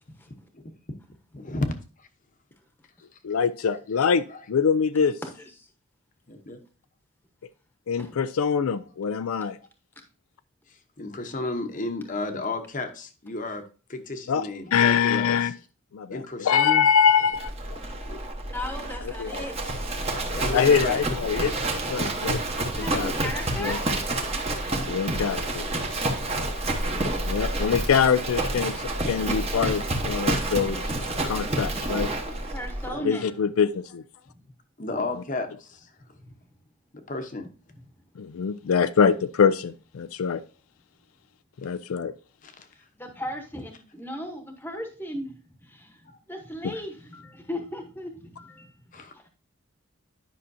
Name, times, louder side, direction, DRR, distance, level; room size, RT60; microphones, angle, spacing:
voice 1, 1.3-2.1 3.7-3.8 4.3-4.5 6.3-6.6 10.7-13.6 13.9-15.5 16.1-16.9 18.1-18.2 20.3-21.0 27.2-27.3 27.6-27.8 31.2-31.3 32.9-33.0 34.8-35.9 36.9-37.5 42.4-42.7 48.9-49.1, left 2 dB, 35° left, 7 dB, 0.9 m, -33 dB
voice 2, 3.2-5.1 7.9-9.6 14.3-15.5 15.9-17.8 19.2-19.4 20.5-21.5 21.9-22.4 22.9-23.1 23.6-23.8 24.9-25.7 27.2-30.8 31.2-32.1 33.0-34.0 38.2-40.4 41.6-42.1 46.6-46.7, left 6 dB, 85° left, 12 dB, 0.4 m, -24 dB
voice 3, 5.2-5.7 8.0-8.1 18.5-19.8 22.7-24.0 32.3-33.4 34.3-34.4 36.2-36.3 37.7-37.8 42.7-45.3 45.6-49.3, left 1 dB, 10° left, 4 dB, 1.0 m, -37 dB
Livestock farm animals working animals, 17.3-32.9, right 2 dB, 30° right, 1.1 m, -29 dB
10.0 x 5.7 x 2.7 m, 0.37 s
head